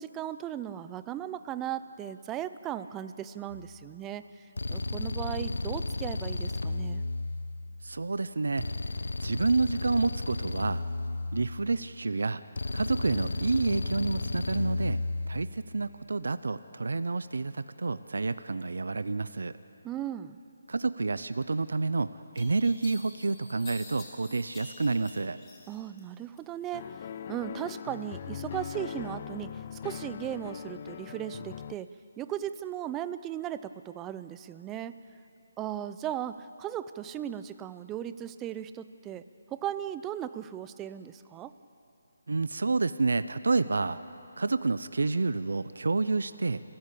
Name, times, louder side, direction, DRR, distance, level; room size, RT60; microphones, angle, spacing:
voice 1, 0.0-7.0 19.8-20.4 25.7-26.8 27.3-35.0 35.6-41.5, right 11 dB, 15° right, 13 dB, 0.5 m, -37 dB
sound 1, 3.5-3.8 4.6-7.8 8.6-11.8 12.6-15.5, left 2 dB, 80° left, 1.0 m, -33 dB
voice 2, 7.8-8.7 9.2-10.8 11.3-12.4 12.7-15.0 15.3-19.5 20.7-25.4 42.3-44.0 44.4-46.6, right 3 dB, 75° right, 14 dB, 0.7 m, -29 dB
sound 2, 21.6-21.7 22.3-26.0 26.4-27.1, left 4 dB, 15° left, 2.3 m, -49 dB
sound 3, 26.7-31.8, left 9 dB, 35° left, 0.4 m, -40 dB
29.0 x 13.5 x 8.5 m, 2.8 s
figure-of-eight pair, 160°, 0 cm